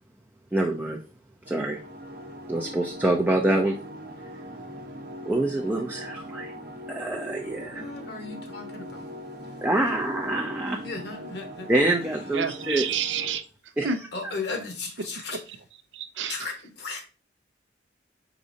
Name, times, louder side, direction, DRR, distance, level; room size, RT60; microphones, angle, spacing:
voice 1, 0.5-1.0 1.5-1.8 2.5-3.8 5.3-6.5 6.9-7.9 9.6-10.8 11.7-12.9 13.8-13.9, right 1 dB, 10° right, 0.5 m, -25 dB
sound 1, 1.4-13.3, equal, 55° right, 0.8 m, -41 dB
voice 2, 7.4-9.1 9.4-9.6 10.8-11.7 12.0-12.2 14.1-15.4 16.3-17.0, left 4 dB, 60° left, 1.1 m, -36 dB
voice 3, 12.3-14.0 15.2-15.4 15.9-16.5, right 6 dB, 75° right, 0.5 m, -30 dB
4.9 x 4.1 x 2.6 m
head